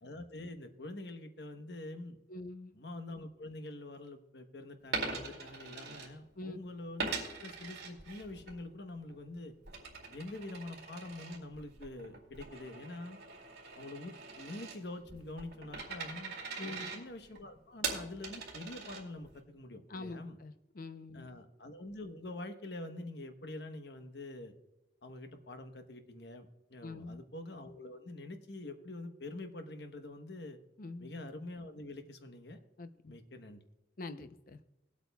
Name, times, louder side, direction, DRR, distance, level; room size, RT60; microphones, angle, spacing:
voice 1, 0.0-2.2 2.7-9.5 10.1-13.2 13.8-16.4 16.6-20.4 21.1-24.5 25.0-30.6 31.0-32.6 33.1-33.6, left 2 dB, 70° left, 7 dB, 1.0 m, -46 dB
voice 2, 2.3-2.7 6.4-6.6 16.6-17.0 19.9-21.4 26.8-27.2 30.8-31.1 32.8-33.1 34.0-34.6, left 2 dB, 50° left, 9 dB, 0.6 m, -45 dB
Coin (dropping), 4.8-6.5 7.0-8.6 8.9-19.4, right 4 dB, 65° right, 2.2 m, -42 dB
19.5 x 8.3 x 2.3 m, 0.95 s
head